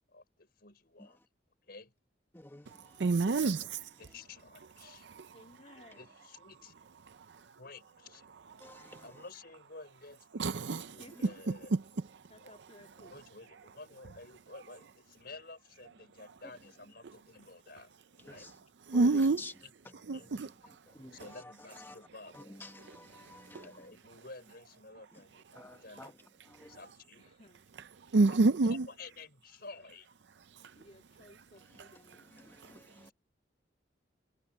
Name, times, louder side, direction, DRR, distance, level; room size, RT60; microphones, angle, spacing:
voice 1, 0.1-1.2 1.7-1.9 4.0-5.1 6.0-6.7 7.6-8.2 9.0-11.8 12.4-12.5 13.0-17.9 18.2-18.5 19.0-19.2 19.6-20.5 21.1-22.6 23.6-26.1 26.6-27.3 28.3-30.1 33.0-33.1, left 3 dB, 55° left, 5.6 m, -52 dB
voice 2, 3.0-3.9 4.8-5.4 5.8-5.9 8.6-9.0 10.4-10.9 11.2-11.8 12.6-12.7 13.0-13.1 18.9-19.5 20.1-20.5 21.1-21.2 22.9-23.0 23.5-23.7 27.8-28.9 31.8-31.9, right 3 dB, 65° right, 0.5 m, -29 dB
voice 3, 5.3-6.0 11.0-11.3 12.3-13.1 27.2-27.6 30.8-32.3, left 1 dB, 35° left, 2.2 m, -57 dB
voice 4, 8.6-9.0 18.4-18.5 18.9-19.5 21.0-21.2 22.6-23.7 25.6-26.1 26.6-26.7 32.7-33.1, left 2 dB, 10° left, 1.2 m, -48 dB
head